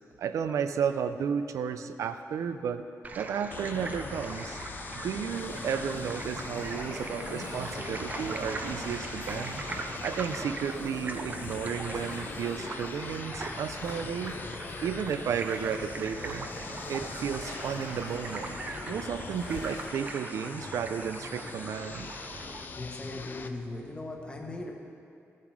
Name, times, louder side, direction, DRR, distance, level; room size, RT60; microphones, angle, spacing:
voice 1, 0.2-2.9 3.2-4.6 4.9-9.6 10.0-14.3 14.8-16.5 16.9-18.6 18.9-22.1, right 7 dB, 75° right, 10 dB, 0.5 m, -33 dB
sound 1, 3.0-22.7, right 3 dB, 30° right, 0.5 m, -41 dB
sound 2, 3.5-23.5, left 4 dB, 35° left, 0.5 m, -42 dB
sound 3, 5.3-19.9, left 2 dB, 65° left, 2.6 m, -44 dB
voice 2, 22.7-24.7, left 2 dB, 20° left, 1 dB, 1.2 m, -38 dB
14.5 x 7.4 x 4.8 m, 2.5 s
wide cardioid pair, 160°, 5 cm